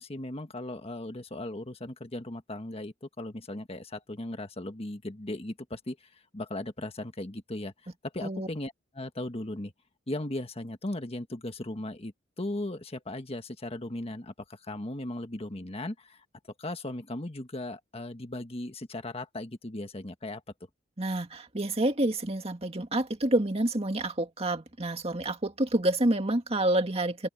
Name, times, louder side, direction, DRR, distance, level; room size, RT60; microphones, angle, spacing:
voice 1, 0.0-9.7 10.1-16.2 16.6-20.4, left 1 dB, 30° left, 1.5 m, -37 dB
voice 2, 21.0-27.3, right 1 dB, 30° right, 2.1 m, -28 dB
open air
head